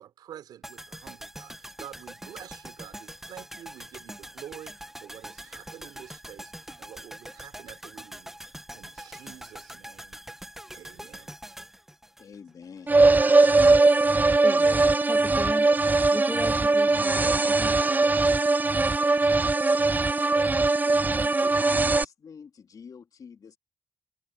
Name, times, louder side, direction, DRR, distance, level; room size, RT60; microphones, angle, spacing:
voice 1, 0.0-10.2 10.7-11.4, right 10 dB, 90° right, 3.5 m, -48 dB
sound 1, 0.6-12.8 13.1-13.2, right 1 dB, 5° right, 1.1 m, -44 dB
voice 2, 12.2-13.0 20.9-23.6, left 6 dB, 60° left, 2.9 m, -46 dB
sound 2, 12.9-22.0, right 3 dB, 25° right, 0.6 m, -21 dB
voice 3, 14.4-17.8, left 2 dB, 20° left, 2.3 m, -37 dB
cardioid pair, 60°, 7 cm